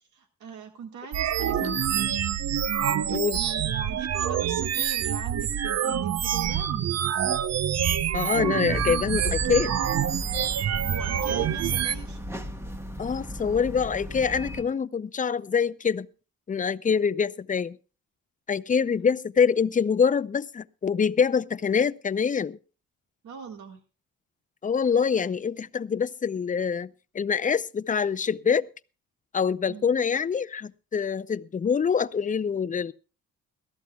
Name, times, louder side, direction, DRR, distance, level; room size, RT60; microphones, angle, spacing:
voice 1, 0.1-2.1 3.3-7.0 10.8-12.2 23.2-23.8 29.7-29.8, right 7 dB, 75° right, 1.8 m, -41 dB
sound 1, 1.1-12.0, right 9 dB, 55° right, 0.8 m, -26 dB
voice 2, 8.1-9.7 13.0-16.1 16.5-17.8 18.5-22.6 24.6-26.9 27.1-28.7 29.3-32.9, left 6 dB, 25° left, 0.6 m, -25 dB
sound 2, 8.7-14.6, equal, 10° right, 1.4 m, -36 dB
21.5 x 13.5 x 2.3 m
cardioid pair, 90°, 30 cm